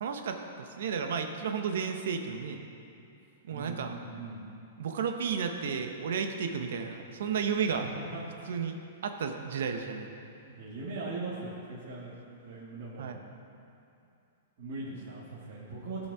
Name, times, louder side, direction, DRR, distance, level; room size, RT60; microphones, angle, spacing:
voice 1, 0.0-2.6 3.5-3.9 4.8-7.9 8.5-8.8 9.0-10.1 13.0-13.2, right 6 dB, 70° right, 5 dB, 1.0 m, -33 dB
voice 2, 3.5-4.5 7.9-8.2 10.4-12.2 12.4-13.2 14.6-16.1, right 3 dB, 50° right, -9 dB, 2.2 m, -40 dB
16.0 x 5.4 x 4.8 m, 2.6 s
hypercardioid pair, 160°, 0 cm